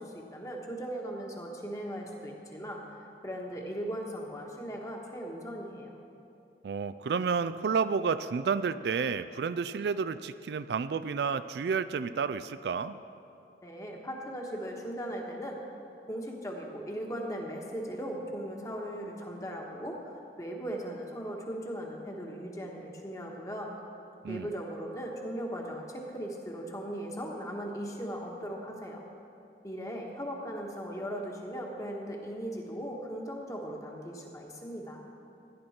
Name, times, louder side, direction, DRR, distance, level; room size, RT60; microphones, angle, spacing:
voice 1, 0.0-2.8 3.2-5.9 13.6-15.6 16.1-23.7 24.3-29.1 29.6-35.0, equal, 20° left, 0 dB, 1.4 m, -38 dB
voice 2, 6.6-13.0 24.2-24.5, right 5 dB, 65° right, 12 dB, 0.4 m, -30 dB
17.0 x 10.5 x 4.3 m, 2.6 s
head